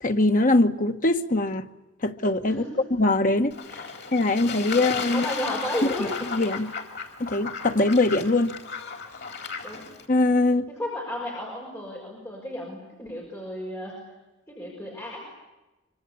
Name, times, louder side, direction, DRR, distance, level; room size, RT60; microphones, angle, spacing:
voice 1, 0.0-1.6 2.0-2.6 2.9-3.6 4.1-5.2 6.3-6.7 7.2-8.6 10.1-10.7, left 2 dB, 45° left, 7 dB, 1.3 m, -22 dB
voice 2, 2.4-2.9 3.6-3.9 4.7-6.3 9.6-9.8 10.7-14.0 14.5-15.3, left 1 dB, 15° left, -2 dB, 6.1 m, -33 dB
Fowl / Bird / Water, 3.5-10.1, left 5 dB, 60° left, 4.1 m, -35 dB
25.5 x 25.0 x 8.5 m, 1.1 s
head